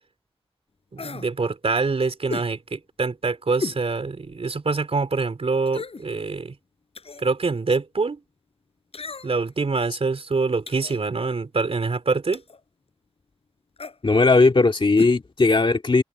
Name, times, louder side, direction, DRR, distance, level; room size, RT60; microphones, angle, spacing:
voice 1, 0.9-6.6 7.2-8.2 9.2-12.4, right 4 dB, 70° right, 3.8 m, -25 dB
sound 1, 1.0-1.3 2.3-2.5 3.6-3.8 4.3-4.4 5.7-6.1 6.9-7.3 8.9-9.5 10.7-11.0 12.3-12.6 13.8-14.0 15.0-15.2 15.4-15.5, left 4 dB, 70° left, 5.2 m, -34 dB
voice 2, 14.0-16.0, left 3 dB, 55° left, 2.2 m, -18 dB
wide cardioid pair, 60°, 10 cm